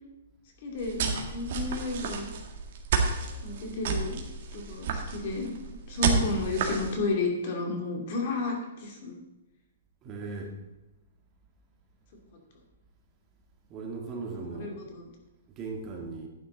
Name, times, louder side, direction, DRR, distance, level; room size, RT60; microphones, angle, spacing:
voice 1, 0.6-2.3 3.4-4.2 4.5-5.5 5.9-9.2 12.3-12.4 14.5-15.0, left 3 dB, 45° left, 1 dB, 2.6 m, -32 dB
sound 1, 0.8-6.9, right 5 dB, 50° right, 1.9 m, -31 dB
voice 2, 10.0-10.5 13.7-14.8 15.6-16.3, right 4 dB, 25° right, 0 dB, 1.7 m, -37 dB
11.5 x 9.3 x 3.9 m, 1.0 s
hypercardioid pair, 160°, 0 cm